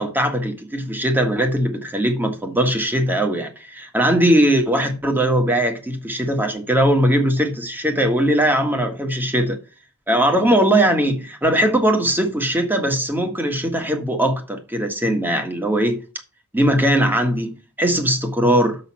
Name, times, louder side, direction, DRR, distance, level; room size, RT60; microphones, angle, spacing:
voice 1, 0.0-9.6 10.1-16.0 16.5-18.8, right 1 dB, 10° right, 1.7 m, -20 dB
6.9 x 6.6 x 6.3 m
head